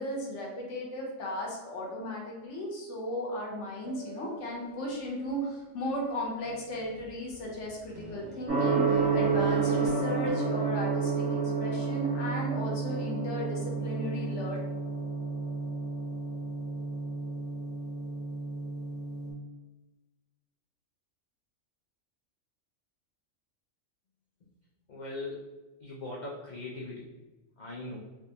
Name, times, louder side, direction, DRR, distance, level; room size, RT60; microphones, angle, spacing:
voice 1, 0.0-14.6, equal, 70° left, -2 dB, 1.0 m, -36 dB
sound 1, 3.8-9.9, equal, 65° right, 0.8 m, -48 dB
Gong, 8.5-19.3, right 4 dB, 15° right, 0.7 m, -30 dB
voice 2, 24.9-25.4 25.8-27.1 27.6-28.0, left 2 dB, 85° left, -3 dB, 0.4 m, -39 dB
3.4 x 2.4 x 2.7 m, 1.1 s
omnidirectional pair, 1.4 m